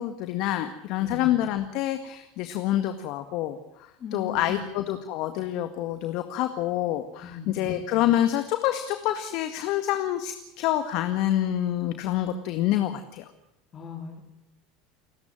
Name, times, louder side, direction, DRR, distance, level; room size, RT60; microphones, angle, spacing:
voice 1, 0.0-13.2, left 12 dB, 60° left, 9 dB, 1.9 m, -27 dB
voice 2, 1.0-1.3 4.0-4.7 7.2-7.7 13.7-14.2, left 5 dB, 40° left, 0 dB, 4.3 m, -38 dB
29.0 x 13.5 x 9.1 m, 0.89 s
hypercardioid pair, 90°, 0 cm